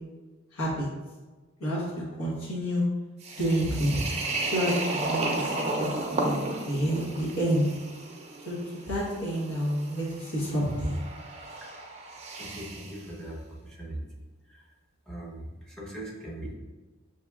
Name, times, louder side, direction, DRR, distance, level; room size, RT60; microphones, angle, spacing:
voice 1, 0.5-0.9 1.6-1.8 2.1-2.8 3.4-4.0 4.4-7.7 8.4-11.0, equal, 75° left, -6 dB, 1.1 m, -29 dB
sound 1, 3.2-13.0, right 2 dB, 30° right, 0.5 m, -34 dB
voice 2, 12.4-14.0 14.5-14.6 15.1-16.6, right 1 dB, 5° left, -4 dB, 0.8 m, -40 dB
6.2 x 2.8 x 2.3 m, 1.3 s
head